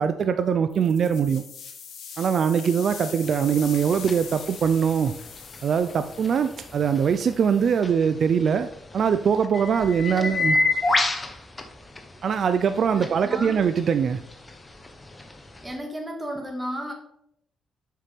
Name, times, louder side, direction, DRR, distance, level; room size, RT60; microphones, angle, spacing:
voice 1, 0.0-1.4 2.2-5.1 5.6-8.7 8.9-10.6 12.2-14.2, right 7 dB, 55° right, 10 dB, 0.4 m, -22 dB
sound 1, 0.7-7.8, left 7 dB, 75° left, 1.4 m, -42 dB
sound 2, 3.2-15.8, left 3 dB, 20° left, 1.0 m, -32 dB
voice 2, 12.9-13.6 15.6-16.9, equal, 15° right, 2 dB, 1.9 m, -34 dB
7.4 x 5.7 x 3.5 m, 0.74 s
cardioid pair, 90°, 0 cm